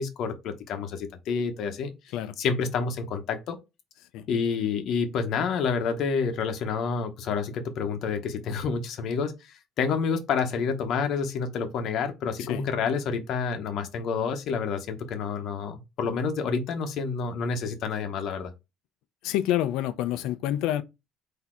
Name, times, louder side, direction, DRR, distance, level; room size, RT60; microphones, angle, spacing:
voice 1, 0.0-1.9 2.4-3.6 4.3-18.5, left 5 dB, 65° left, 0.8 m, -29 dB
voice 2, 19.2-20.8, left 12 dB, 85° left, 0.4 m, -27 dB
4.1 x 2.8 x 4.3 m
cardioid pair, 120°, 0 cm